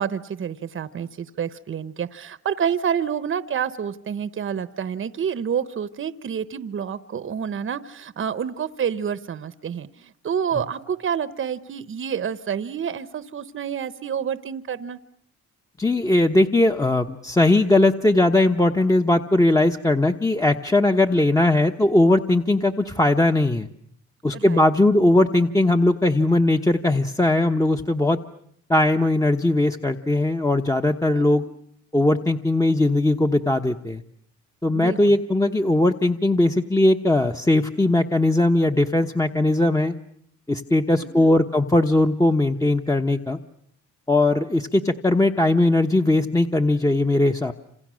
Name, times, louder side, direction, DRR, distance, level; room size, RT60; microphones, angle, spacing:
voice 1, 0.0-15.0 21.1-21.5 24.3-24.7 31.1-31.5 34.7-35.2 41.0-41.4, right 8 dB, 45° right, 14 dB, 1.0 m, -28 dB
voice 2, 15.8-23.7 24.2-28.2 28.7-31.4 31.9-34.0 34.6-39.9 40.5-43.4 44.1-47.5, left 2 dB, 10° left, 4 dB, 1.0 m, -19 dB
28.5 x 27.0 x 6.3 m, 0.67 s
cardioid pair, 90°, 30 cm